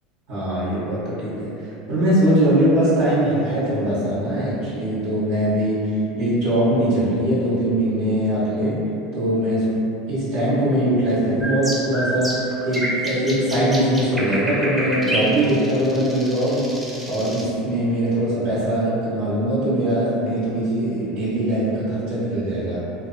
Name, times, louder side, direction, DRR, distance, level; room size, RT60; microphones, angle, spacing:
voice 1, 0.3-1.5 1.9-5.9 6.2-8.7 9.1-9.7 10.1-16.6 17.1-22.8, right 1 dB, 80° right, -11 dB, 1.1 m, -21 dB
sound 1, 11.4-17.4, right 1 dB, 15° right, 0.5 m, -28 dB
2.6 x 2.0 x 2.6 m, 2.8 s
supercardioid pair, 115°, 0 cm